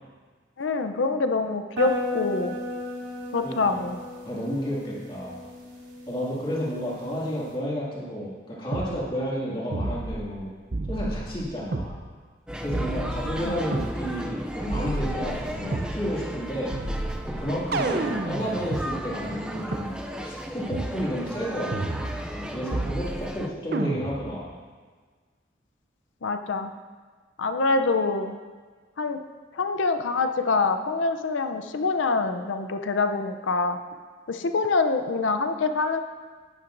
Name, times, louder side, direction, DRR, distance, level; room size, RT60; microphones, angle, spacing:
voice 1, 0.6-2.6 3.3-4.0 13.4-13.6 26.2-26.7 27.4-28.4 29.0-29.2 29.5-33.8 34.3-36.0, left 3 dB, 85° left, 7 dB, 0.6 m, -25 dB
sound 1, 1.8-7.5, left 1 dB, 85° right, 2.5 m, -36 dB
voice 2, 3.4-3.9 4.2-5.4 6.1-10.5 10.9-12.0 12.6-16.8 17.3-19.9 20.2-21.7 22.3-24.5, equal, 25° left, -6 dB, 2.2 m, -31 dB
sound 2, 8.7-8.9 9.7-10.4 10.7-11.9 12.7-13.9 14.7-15.9 16.7-18.9 19.7-19.8 20.7-20.9 21.7-22.4 22.7-23.3 23.7-24.3, right 2 dB, 55° right, 0.6 m, -30 dB
sound 3, 12.5-23.5, equal, 5° right, 0.4 m, -35 dB
10.5 x 9.7 x 2.6 m, 1.5 s
head